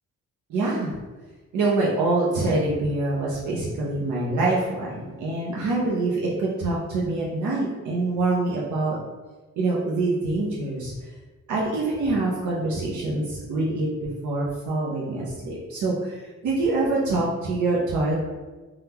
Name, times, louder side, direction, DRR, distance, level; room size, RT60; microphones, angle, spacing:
voice 1, 0.5-0.9 1.5-9.0 9.6-10.9 11.5-18.2, right 2 dB, 85° right, -5 dB, 0.6 m, -25 dB
3.6 x 2.3 x 2.8 m, 1.2 s
wide cardioid pair, 170°, 29 cm